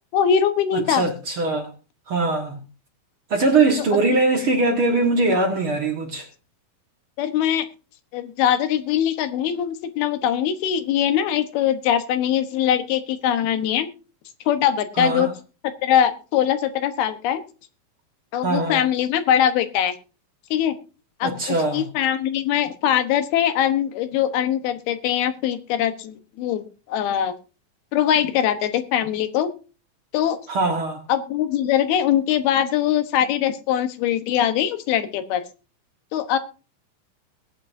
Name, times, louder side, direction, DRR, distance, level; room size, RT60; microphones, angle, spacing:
voice 1, 0.1-1.0 3.9-4.0 7.2-7.7 8.1-13.9 14.5-15.3 15.8-17.4 18.3-19.9 20.5-20.7 21.2-26.6 26.9-27.3 27.9-29.5 30.1-30.4 31.1-35.4 36.1-36.4, left 10 dB, 90° left, 3.1 m, -22 dB
voice 2, 0.7-1.7 2.1-2.6 3.3-6.3 15.0-15.3 18.4-18.8 21.2-21.9 30.5-31.0, right 3 dB, 50° right, 1.8 m, -21 dB
20.5 x 9.0 x 2.6 m
omnidirectional pair, 4.3 m